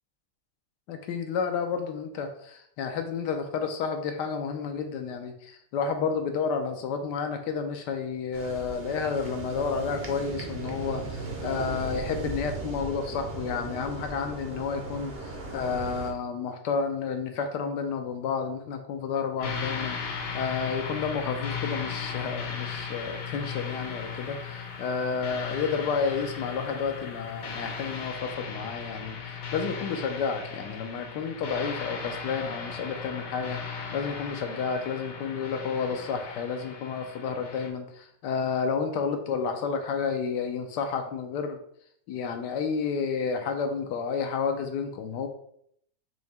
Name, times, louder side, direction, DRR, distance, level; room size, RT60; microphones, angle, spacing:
voice 1, 0.9-41.6 42.1-45.3, left 5 dB, 75° left, 5 dB, 1.1 m, -31 dB
sound 1, 8.3-16.1, right 3 dB, 50° right, 0.8 m, -37 dB
sound 2, 19.4-37.7, left 6 dB, 60° left, 1.1 m, -37 dB
4.6 x 2.8 x 4.1 m, 0.69 s
omnidirectional pair, 1.9 m